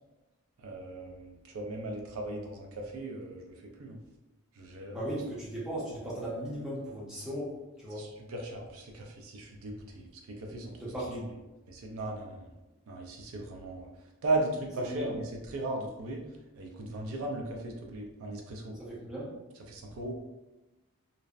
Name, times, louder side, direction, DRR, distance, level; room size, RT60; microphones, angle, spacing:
voice 1, 0.6-4.0 4.5-5.1 7.9-11.3 11.7-12.5 12.9-13.9 14.2-16.2 16.6-18.8 19.7-20.2, right 2 dB, 75° right, 1 dB, 0.4 m, -37 dB
voice 2, 4.9-7.5 7.8-8.1 10.8-11.3 14.9-15.1 18.8-19.3, right 1 dB, 5° right, -7 dB, 0.5 m, -37 dB
2.6 x 2.0 x 2.3 m, 1.1 s
head